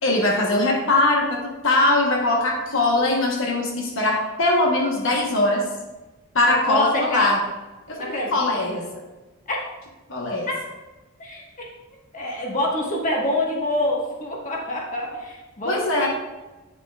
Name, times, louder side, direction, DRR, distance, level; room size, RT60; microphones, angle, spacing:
voice 1, 0.0-5.6 6.3-7.4 7.9-8.9 10.1-10.5 15.6-16.1, left 2 dB, 65° left, 0 dB, 1.2 m, -21 dB
voice 2, 6.5-7.3 8.0-8.8 9.5-9.6 10.5-10.6 11.2-11.6 12.1-16.1, left 1 dB, 35° left, -2 dB, 1.6 m, -26 dB
8.6 x 6.7 x 2.4 m, 1.1 s
head